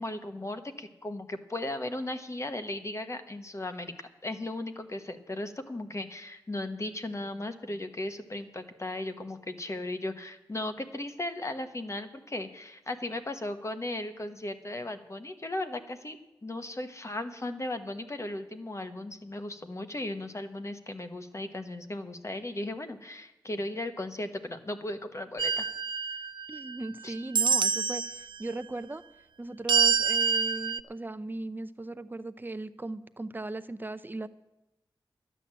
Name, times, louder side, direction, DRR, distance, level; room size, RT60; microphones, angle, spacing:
voice 1, 0.0-16.2 16.4-25.7 27.0-27.1, left 1 dB, 35° left, 8 dB, 1.2 m, -36 dB
sound 1, 25.4-26.9 27.3-28.2 29.7-30.8, right 6 dB, 70° right, 0.4 m, -26 dB
voice 2, 26.5-29.0 29.4-34.3, right 2 dB, 25° right, 12 dB, 0.6 m, -38 dB
12.5 x 9.2 x 7.5 m, 0.95 s
wide cardioid pair, 75°, 8 cm